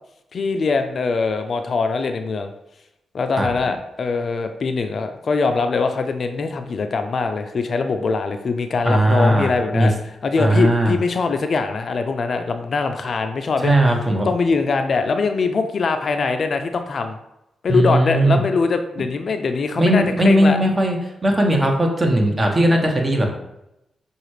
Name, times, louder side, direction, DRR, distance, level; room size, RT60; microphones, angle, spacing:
voice 1, 0.3-2.5 3.1-13.8 14.2-17.2 17.6-20.6, left 4 dB, 60° left, 7 dB, 0.4 m, -22 dB
voice 2, 8.8-9.9 10.4-11.0 13.6-14.3 17.7-18.4 19.8-23.3, right 1 dB, 30° right, 1 dB, 1.1 m, -18 dB
5.7 x 2.4 x 3.2 m, 0.88 s
supercardioid pair, 40°, 0 cm